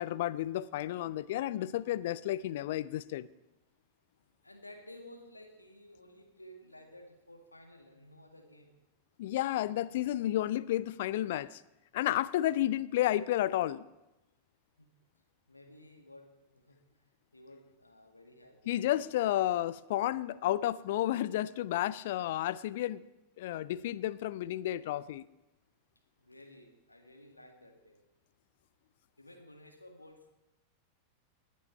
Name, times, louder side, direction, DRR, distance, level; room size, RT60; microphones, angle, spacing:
voice 1, 0.0-3.3 9.2-11.6 11.9-13.8 18.7-23.0 23.4-25.3, left 13 dB, 55° left, 19 dB, 0.4 m, -31 dB
voice 2, 4.4-8.8 14.8-14.9 15.5-19.1 26.2-28.0 29.2-30.3, left 1 dB, 85° left, 3 dB, 1.8 m, -54 dB
18.5 x 8.4 x 4.4 m, 0.99 s
figure-of-eight pair, 90°, 0 cm